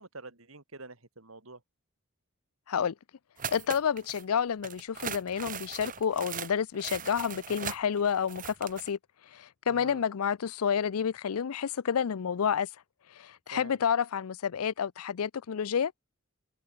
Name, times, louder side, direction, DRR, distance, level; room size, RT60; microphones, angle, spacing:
voice 1, 0.0-1.6 9.7-10.0 13.5-13.8, right 3 dB, 70° right, 3.6 m, -47 dB
sound 1, 3.4-4.2 4.6-8.9, right 7 dB, 40° right, 1.9 m, -39 dB
voice 2, 3.5-9.0 9.3-12.7 13.2-15.9, left 7 dB, 85° left, 0.5 m, -29 dB
head